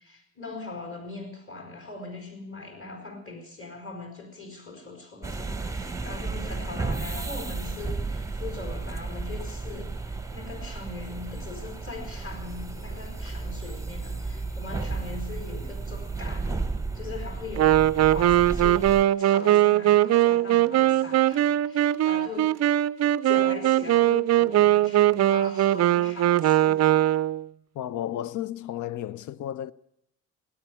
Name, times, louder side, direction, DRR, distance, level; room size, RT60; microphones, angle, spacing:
voice 1, 0.0-16.6 16.9-22.6 23.2-27.2, left 3 dB, 30° left, 4.5 m, -40 dB
sound 1, 5.2-19.0, right 3 dB, 10° right, 1.0 m, -33 dB
Wind instrument woodwind instrument, 17.6-27.5, right 13 dB, 40° right, 0.5 m, -21 dB
voice 2, 27.7-29.7, left 12 dB, 45° left, 0.7 m, -33 dB
18.0 x 9.6 x 8.3 m
hypercardioid pair, 45°, 41 cm